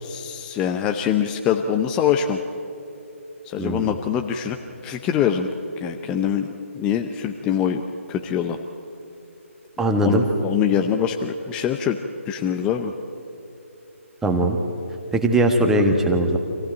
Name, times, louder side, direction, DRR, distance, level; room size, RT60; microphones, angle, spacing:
voice 1, 0.0-2.4 3.5-4.6 4.8-5.5 5.8-6.5 6.7-7.8 8.1-8.6 10.0-12.0 12.3-12.9, left 8 dB, 10° left, 5 dB, 0.6 m, -24 dB
voice 2, 3.6-3.9 9.8-10.2 14.2-14.6 15.1-16.4, right 1 dB, 5° right, 3 dB, 1.5 m, -20 dB
26.0 x 15.5 x 8.8 m, 2.7 s
figure-of-eight pair, 150°, 8 cm